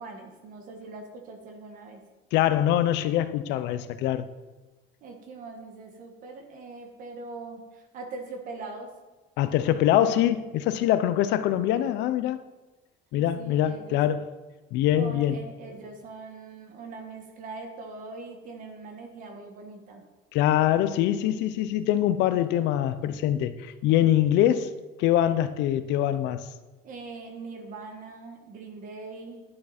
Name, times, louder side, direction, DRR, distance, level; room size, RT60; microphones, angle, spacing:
voice 1, 0.0-2.0 5.0-8.9 13.1-14.0 15.0-20.0 26.8-29.4, right 3 dB, 45° right, 1.7 m, -42 dB
voice 2, 2.3-4.3 9.4-12.4 13.1-14.3 14.7-15.4 20.3-24.7 25.0-26.4, left 11 dB, 65° left, 0.7 m, -24 dB
11.0 x 8.7 x 4.3 m
cardioid pair, 175°, 19 cm